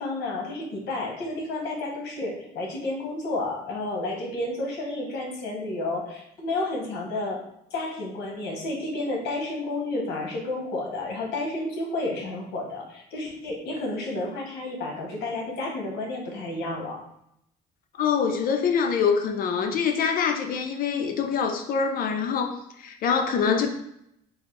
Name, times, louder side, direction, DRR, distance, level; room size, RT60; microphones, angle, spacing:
voice 1, 0.0-7.4 7.7-17.0, left 2 dB, 85° left, 1 dB, 1.0 m, -31 dB
voice 2, 18.0-23.7, left 6 dB, 60° left, 5 dB, 0.6 m, -25 dB
3.8 x 2.6 x 3.2 m, 0.76 s
cardioid pair, 110°, 17 cm